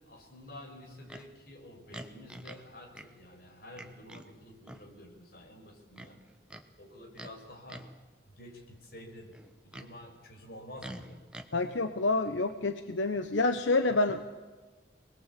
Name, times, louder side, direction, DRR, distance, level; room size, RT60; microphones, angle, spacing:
voice 1, 0.0-6.2 6.8-7.9 8.3-9.3 9.6-11.2, left 1 dB, 50° left, 2 dB, 5.9 m, -49 dB
Livestock farm animals working animals, 1.1-1.3 1.9-2.7 2.9-3.1 3.7-4.3 4.6-4.9 5.9-6.7 7.1-7.4 7.7-8.0 9.3-9.9 10.8-11.5, right 1 dB, 5° right, 1.2 m, -46 dB
voice 2, 11.5-14.2, left 2 dB, 85° left, 8 dB, 1.2 m, -28 dB
26.5 x 20.5 x 8.6 m, 1.3 s
head